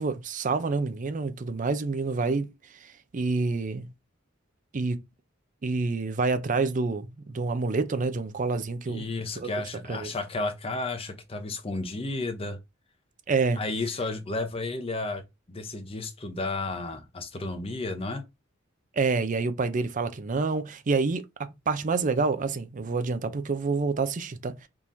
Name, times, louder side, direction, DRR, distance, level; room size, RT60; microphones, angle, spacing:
voice 1, 0.0-2.5 2.8-3.9 4.7-5.0 5.6-9.1 9.4-9.5 9.9-10.1 13.3-13.6 18.9-24.7, right 4 dB, 40° right, 0.5 m, -28 dB
voice 2, 8.9-12.6 13.6-15.2 15.5-18.2, left 2 dB, 30° left, 0.7 m, -32 dB
3.6 x 3.0 x 2.5 m
head